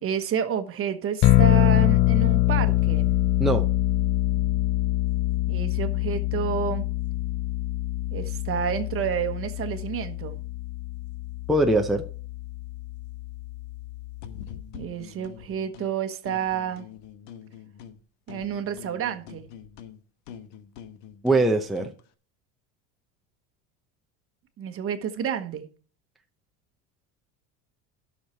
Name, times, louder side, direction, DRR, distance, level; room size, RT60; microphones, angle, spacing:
voice 1, 0.0-3.1 5.5-6.8 8.1-10.4 14.7-16.9 18.3-19.5 24.6-25.7, right 8 dB, 40° right, 1.2 m, -29 dB
sound 1, 1.2-14.6, left 15 dB, 35° left, 0.4 m, -25 dB
voice 2, 11.5-12.0 21.2-21.9, right 2 dB, ahead, 0.7 m, -21 dB
sound 2, 14.2-15.9 16.2-18.0 18.3-22.0, left 8 dB, 90° left, 1.2 m, -44 dB
12.0 x 6.6 x 4.4 m
cardioid pair, 130°, 36 cm